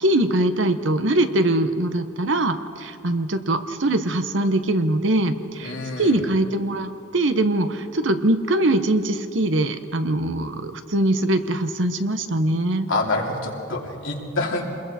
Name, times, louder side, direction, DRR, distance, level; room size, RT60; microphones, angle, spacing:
voice 1, 0.0-12.9, right 1 dB, 70° right, 9 dB, 1.1 m, -22 dB
voice 2, 5.6-6.2 12.9-14.6, left 2 dB, 80° left, -1 dB, 2.9 m, -26 dB
28.0 x 21.5 x 4.3 m, 2.7 s
head